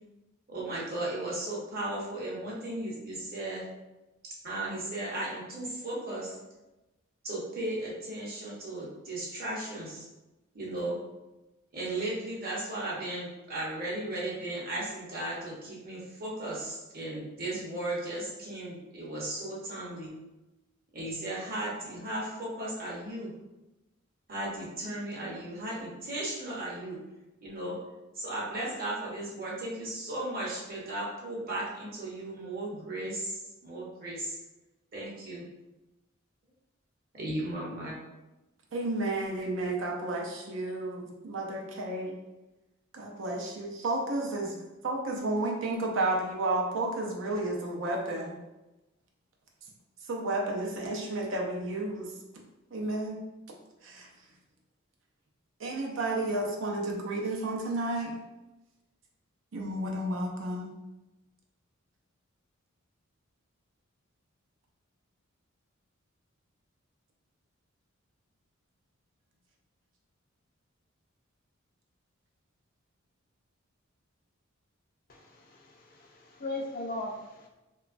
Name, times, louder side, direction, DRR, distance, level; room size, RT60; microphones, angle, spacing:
voice 1, 0.5-3.6 4.4-6.4 7.2-10.1 10.5-11.0 11.7-20.1 20.9-23.3 24.3-27.0 27.4-27.8 28.1-34.4 34.9-35.4 37.1-38.0, right 1 dB, 50° right, -5 dB, 0.9 m, -36 dB
voice 2, 38.7-42.1 42.9-44.5 44.8-48.3 50.1-52.1 52.7-53.2 53.8-54.1 55.6-58.2 59.5-60.7, right 2 dB, 70° right, 0 dB, 0.5 m, -32 dB
voice 3, 75.1-77.5, left 2 dB, 45° left, 0 dB, 0.4 m, -38 dB
2.9 x 2.3 x 2.4 m, 1.0 s
head